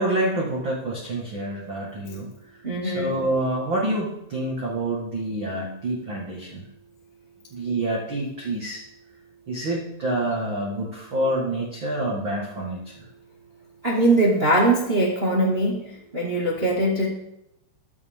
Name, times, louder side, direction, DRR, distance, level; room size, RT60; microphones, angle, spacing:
voice 1, 0.0-2.3 2.8-6.6 7.5-8.8 9.5-12.8, right 1 dB, 55° right, -3 dB, 1.3 m, -27 dB
voice 2, 2.6-3.2 13.8-15.8 16.1-17.1, right 1 dB, 75° right, -3 dB, 0.5 m, -21 dB
21.5 x 8.0 x 3.7 m, 0.83 s
omnidirectional pair, 5.3 m